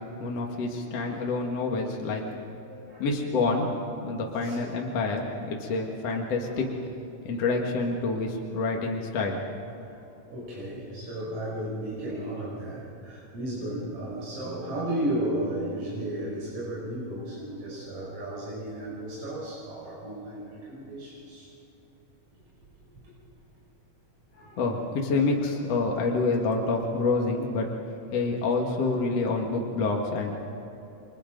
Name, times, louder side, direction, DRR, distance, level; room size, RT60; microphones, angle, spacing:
voice 1, 0.2-2.2 3.0-3.7 4.0-6.7 7.2-9.4 24.6-27.7 28.1-30.4, left 3 dB, 55° left, 0 dB, 2.6 m, -27 dB
voice 2, 2.7-3.1 4.4-4.6 6.4-6.5 10.3-21.5 23.0-23.1 24.3-24.7 28.8-28.9 29.2-29.4, right 1 dB, 45° right, -7 dB, 6.6 m, -34 dB
29.5 x 24.0 x 5.2 m, 2.8 s
omnidirectional pair, 3.7 m